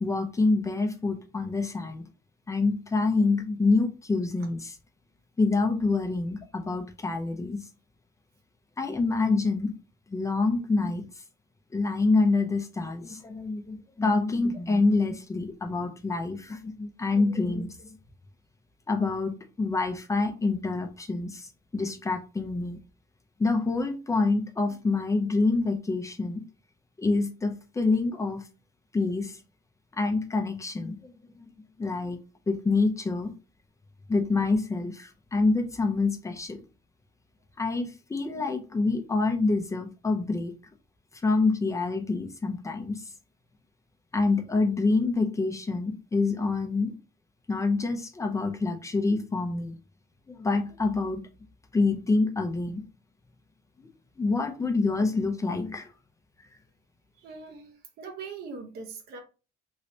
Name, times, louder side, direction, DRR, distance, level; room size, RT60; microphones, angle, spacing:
voice 1, 0.0-2.0 2.5-4.8 5.4-7.6 8.8-9.7 10.1-11.1 11.7-17.9 18.9-21.5 21.7-22.8 23.4-26.4 27.0-28.4 28.9-29.4 29.9-31.5 31.8-32.2 32.5-33.3 34.1-36.6 37.6-40.5 41.1-43.0 44.1-46.9 47.5-49.8 50.3-51.2 51.7-52.8 53.8-53.9 54.2-55.9, left 3 dB, 20° left, 0.6 m, -26 dB
voice 2, 57.2-59.2, right 4 dB, 70° right, 0.9 m, -41 dB
3.1 x 3.0 x 2.8 m
cardioid pair, 110°, 17 cm